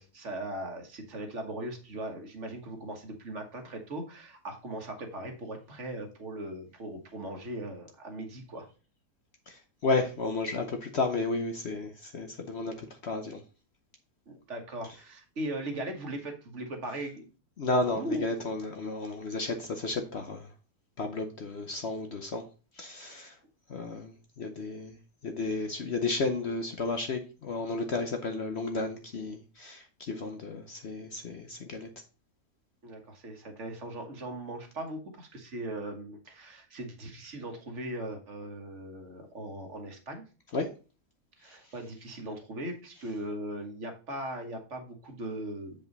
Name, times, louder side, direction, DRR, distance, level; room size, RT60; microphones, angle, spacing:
voice 1, 0.0-8.7 14.3-17.3 17.9-18.3 32.8-40.2 41.4-45.7, right 1 dB, 50° right, 1.6 m, -39 dB
voice 2, 9.5-13.4 17.6-20.5 21.0-22.4 22.8-23.4 23.7-25.0 25.2-31.9 40.5-40.7 41.5-41.6 43.0-43.1, left 3 dB, 50° left, 0.9 m, -33 dB
7.6 x 5.2 x 3.9 m
omnidirectional pair, 1.7 m